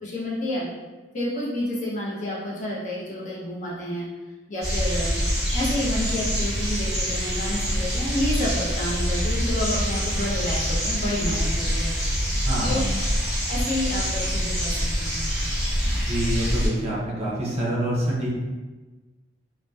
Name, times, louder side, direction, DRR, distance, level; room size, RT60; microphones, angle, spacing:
voice 1, 0.0-0.7 1.1-4.1 4.5-5.2 5.5-11.9 12.6-12.8 13.5-15.2, left 1 dB, 45° left, -6 dB, 0.6 m, -29 dB
sound 1, 4.6-16.7, equal, ahead, 1.3 m, -25 dB
voice 2, 12.4-12.9 16.1-18.3, right 1 dB, 35° right, -6 dB, 0.6 m, -26 dB
2.7 x 2.1 x 2.2 m, 1.2 s
head